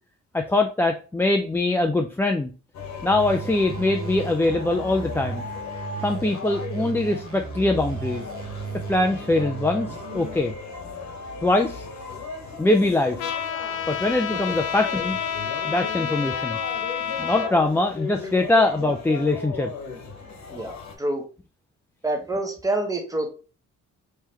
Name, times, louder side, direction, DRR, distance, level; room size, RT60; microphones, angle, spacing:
voice 1, 0.3-2.5 3.0-5.4 6.0-8.2 8.9-10.5 11.4-11.9 12.6-13.3 13.9-15.2 15.6-16.6 17.2-19.7, left 2 dB, 10° left, 2 dB, 0.3 m, -22 dB
sound 1, 2.7-20.9, left 5 dB, 65° left, 1.1 m, -37 dB
sound 2, 3.1-10.5, right 7 dB, 50° right, 0.8 m, -36 dB
Trumpet, 13.2-17.5, left 8 dB, 85° left, 0.5 m, -29 dB
voice 2, 20.5-21.2 22.0-23.3, right 2 dB, 10° right, 4 dB, 1.0 m, -27 dB
3.6 x 3.2 x 2.8 m, 0.35 s
cardioid pair, 90°, 30 cm